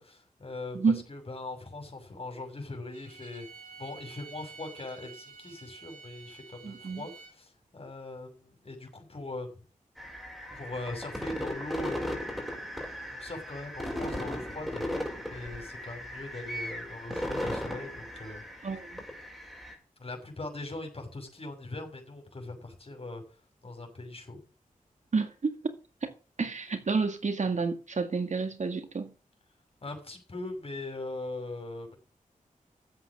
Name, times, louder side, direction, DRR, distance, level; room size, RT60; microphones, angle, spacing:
voice 1, 0.0-3.5 3.8-9.5 10.5-12.1 13.1-18.8 20.0-23.2 23.6-24.4 29.8-31.9, left 2 dB, 45° left, 6.7 m, -41 dB
Bowed string instrument, 2.9-7.4, right 5 dB, 70° right, 6.1 m, -50 dB
voice 2, 6.6-7.0 18.6-19.0 25.1-25.6 26.0-29.1, right 4 dB, 55° right, 1.9 m, -30 dB
sound 1, 10.0-19.7, left 1 dB, ahead, 5.9 m, -37 dB
13.0 x 8.3 x 6.2 m
wide cardioid pair, 75°, 14 cm